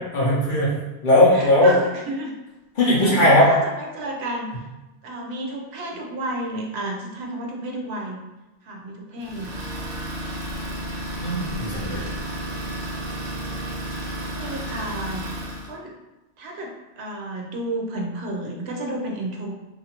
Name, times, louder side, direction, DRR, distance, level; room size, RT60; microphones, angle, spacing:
voice 1, 0.1-1.7 2.8-3.5 11.2-12.0, left 1 dB, 55° left, -5 dB, 0.8 m, -18 dB
voice 2, 1.3-2.3 2.8-4.5 5.0-8.2 8.6-9.7 12.5-12.8 13.4-13.7 14.3-15.2 15.7-15.9 16.4-19.5, right 2 dB, 75° right, 0 dB, 0.8 m, -31 dB
Idling, 9.2-15.7, right 1 dB, 45° right, 0.3 m, -32 dB
2.5 x 2.5 x 2.8 m, 1.1 s
omnidirectional pair, 1.1 m